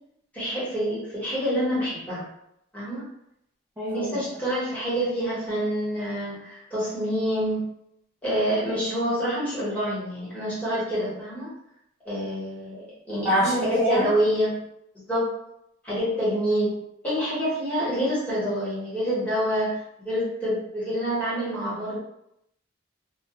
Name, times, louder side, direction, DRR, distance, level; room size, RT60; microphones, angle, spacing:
voice 1, 0.3-2.3 2.7-3.0 3.9-7.7 8.2-11.5 12.0-14.6 14.9-15.3 15.8-16.8 17.0-22.0, equal, 5° left, -9 dB, 0.9 m, -27 dB
voice 2, 3.8-4.2 13.2-14.1, right 1 dB, 15° right, -10 dB, 0.4 m, -25 dB
2.2 x 2.0 x 2.8 m, 0.81 s
head